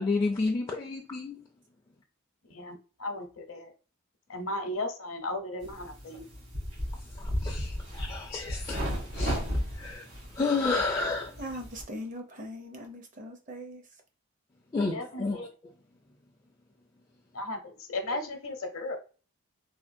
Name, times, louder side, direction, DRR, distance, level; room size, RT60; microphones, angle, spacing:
voice 1, 0.0-1.4 7.2-8.9 9.1-9.4 9.7-10.1 10.3-11.5 14.7-15.5, left 3 dB, 20° left, 0.4 m, -31 dB
voice 2, 2.5-3.7 4.3-6.3 14.7-15.5 17.3-19.0, left 2 dB, 65° left, 0.7 m, -36 dB
sound 1, 5.6-11.8, equal, 80° right, 1.4 m, -35 dB
voice 3, 11.4-13.8, equal, 35° right, 0.5 m, -40 dB
3.5 x 2.2 x 2.6 m
head